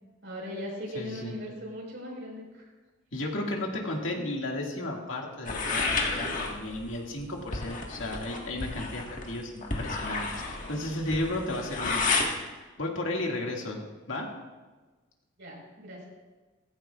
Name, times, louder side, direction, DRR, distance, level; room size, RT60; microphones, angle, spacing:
voice 1, 0.2-2.6 15.4-16.1, left 1 dB, 65° right, -3 dB, 4.7 m, -39 dB
voice 2, 0.9-1.3 3.1-12.3 12.8-14.3, left 1 dB, 85° left, 0 dB, 2.0 m, -34 dB
sound 1, 5.5-12.3, left 3 dB, 40° left, 1.6 m, -31 dB
15.5 x 15.0 x 2.4 m, 1.3 s
head